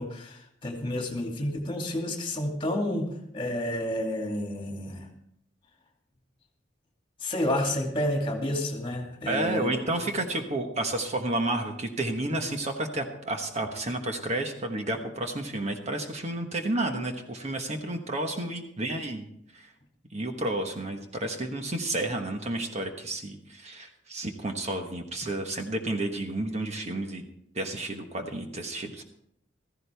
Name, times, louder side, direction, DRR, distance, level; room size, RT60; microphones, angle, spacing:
voice 1, 0.0-5.1 7.2-9.7 10.0-10.1, left 1 dB, 30° left, 1 dB, 2.5 m, -30 dB
voice 2, 9.3-19.3 19.5-19.7 20.1-27.2 27.5-29.0, right 1 dB, 35° right, 4 dB, 1.2 m, -31 dB
15.5 x 14.5 x 3.5 m, 0.75 s
head